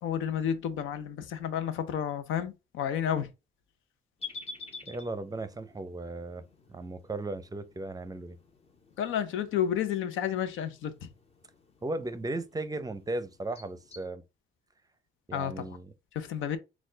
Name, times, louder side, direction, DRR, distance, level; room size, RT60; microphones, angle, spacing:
voice 1, 0.0-3.3 9.0-11.1 15.3-15.8 16.1-16.6, left 9 dB, 85° left, 0.7 m, -31 dB
sound 1, 4.2-14.1, left 4 dB, 30° left, 0.9 m, -50 dB
voice 2, 4.8-6.4 6.7-8.4 11.8-14.2 15.3-15.9, right 2 dB, 20° right, 0.6 m, -36 dB
4.3 x 2.4 x 3.8 m
cardioid pair, 90°, 20 cm